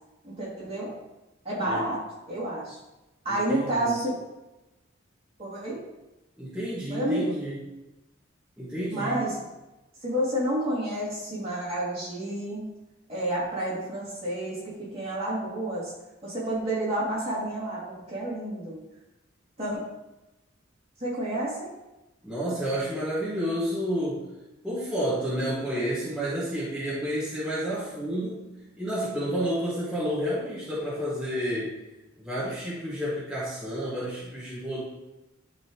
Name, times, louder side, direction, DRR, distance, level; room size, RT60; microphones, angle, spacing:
voice 1, 0.2-0.9 1.4-2.0 2.3-2.8 3.2-4.2 5.4-5.8 6.9-7.3 8.9-9.3 10.0-12.6 13.1-14.6 14.9-15.9 16.2-18.8 19.6-19.8 21.0-21.7, right 1 dB, 30° right, -7 dB, 2.8 m, -29 dB
voice 2, 3.3-3.9 6.4-7.6 8.6-9.2 22.2-24.2 24.6-28.4 28.8-31.8 32.2-34.8, equal, 5° right, -11 dB, 2.1 m, -30 dB
12.0 x 4.0 x 3.1 m, 0.99 s
head